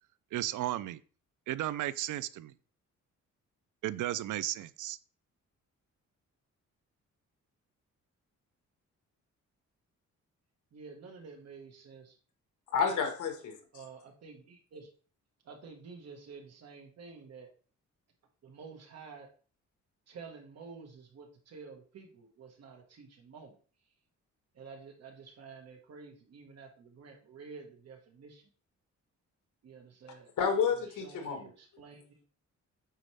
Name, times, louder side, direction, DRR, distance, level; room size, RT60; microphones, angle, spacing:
voice 1, 0.3-1.0 1.5-2.5 3.8-5.0, right 14 dB, 90° right, 16 dB, 0.5 m, -34 dB
voice 2, 10.7-12.2 12.9-13.1 13.7-14.9 15.4-17.5 18.4-19.3 20.1-23.5 24.5-28.4 29.6-30.3 31.0-32.0, right 5 dB, 55° right, 2 dB, 1.7 m, -50 dB
voice 3, 12.7-13.6 30.4-31.5, left 6 dB, 80° left, 5 dB, 1.7 m, -30 dB
9.2 x 4.1 x 3.4 m, 0.39 s
wide cardioid pair, 170°, 30 cm